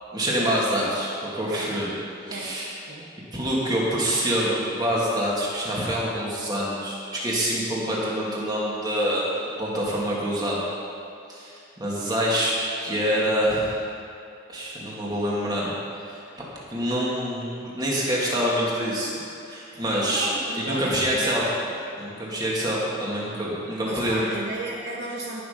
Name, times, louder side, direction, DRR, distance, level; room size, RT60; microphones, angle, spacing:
voice 1, 0.1-1.9 2.2-2.7 3.3-9.3 9.6-10.7 11.3-12.5 12.8-13.8 14.5-16.2 16.7-19.1 19.5-20.3 20.5-21.5 22.0-24.2, equal, 20° right, -5 dB, 2.4 m, -26 dB
voice 2, 19.7-21.6 23.9-25.4, right 2 dB, 55° right, -3 dB, 1.1 m, -35 dB
18.5 x 6.6 x 5.2 m, 2.5 s
head